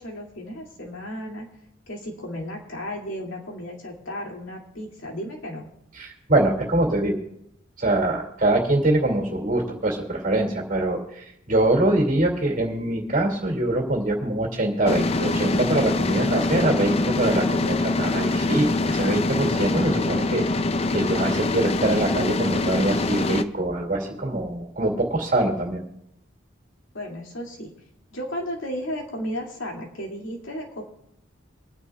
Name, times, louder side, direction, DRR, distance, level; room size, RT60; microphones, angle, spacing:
voice 1, 0.0-1.5 1.9-5.7 26.9-27.7 28.1-30.8, equal, 80° left, 0 dB, 2.4 m, -34 dB
voice 2, 6.0-7.2 7.8-20.4 20.9-25.8, right 1 dB, 40° right, 2 dB, 2.4 m, -23 dB
sound 1, 14.9-23.4, left 2 dB, 30° left, 0.4 m, -24 dB
26.5 x 9.8 x 2.3 m, 0.77 s
head